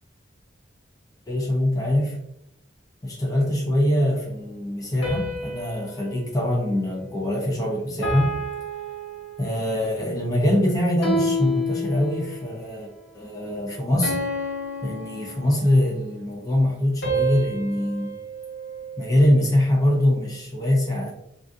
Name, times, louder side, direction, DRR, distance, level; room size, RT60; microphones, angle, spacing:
voice 1, 1.3-2.2 3.0-8.3 9.4-12.9 13.1-14.2 14.8-18.1 19.0-21.1, left 1 dB, 20° left, -2 dB, 0.6 m, -23 dB
sound 1, 5.0-7.5 8.0-9.8 11.0-12.6 14.0-15.9 17.0-19.4, equal, 75° left, 1.3 m, -30 dB
3.9 x 2.4 x 2.5 m, 0.82 s
head